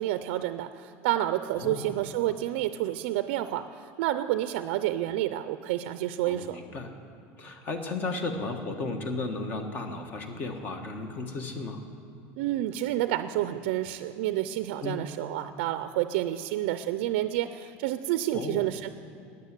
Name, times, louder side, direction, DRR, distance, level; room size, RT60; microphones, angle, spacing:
voice 1, 0.0-6.6 12.4-18.9, right 13 dB, 75° right, 11 dB, 0.5 m, -29 dB
voice 2, 1.6-1.9 6.2-6.9 7.4-11.8 14.8-15.0 18.3-18.7, left 3 dB, 30° left, 6 dB, 1.4 m, -34 dB
13.5 x 9.6 x 8.1 m, 2.6 s
cardioid pair, 160°, 6 cm